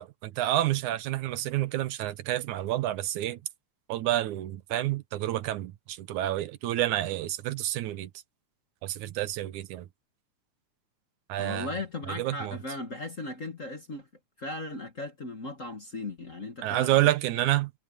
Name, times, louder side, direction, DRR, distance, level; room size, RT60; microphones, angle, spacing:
voice 1, 0.0-3.4 3.9-8.1 8.8-9.9 11.3-11.7 12.1-12.6 16.6-17.7, right 14 dB, 85° right, 2.4 m, -29 dB
voice 2, 11.4-14.1 14.4-16.9, left 2 dB, 35° left, 1.5 m, -37 dB
omnidirectional pair, 3.4 m